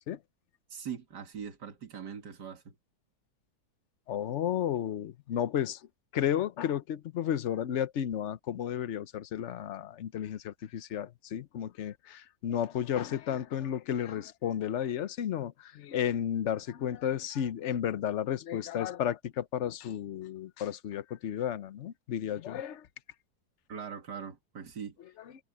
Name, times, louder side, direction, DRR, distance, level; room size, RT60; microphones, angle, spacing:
voice 1, 0.7-2.7 23.7-24.9, right 7 dB, 85° right, 2.6 m, -41 dB
voice 2, 4.1-5.8 6.1-22.9, left 10 dB, 55° left, 1.0 m, -33 dB
omnidirectional pair, 1.7 m